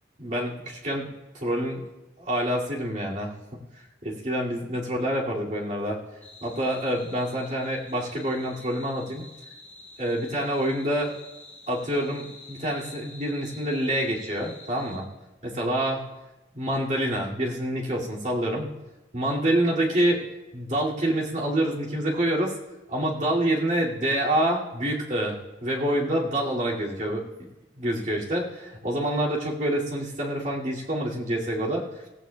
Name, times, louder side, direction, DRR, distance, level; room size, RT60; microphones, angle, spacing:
voice 1, 0.2-1.1 1.3-1.8 2.2-3.3 4.0-6.0 6.4-9.3 10.0-11.1 11.7-15.0 15.4-16.1 16.5-18.7 19.1-20.2 20.5-22.5 22.9-27.2 27.8-31.8, right 1 dB, 40° right, -4 dB, 2.4 m, -27 dB
sound 1, 6.2-15.0, left 2 dB, 10° left, 5.3 m, -48 dB
16.5 x 15.5 x 2.3 m, 1.1 s
head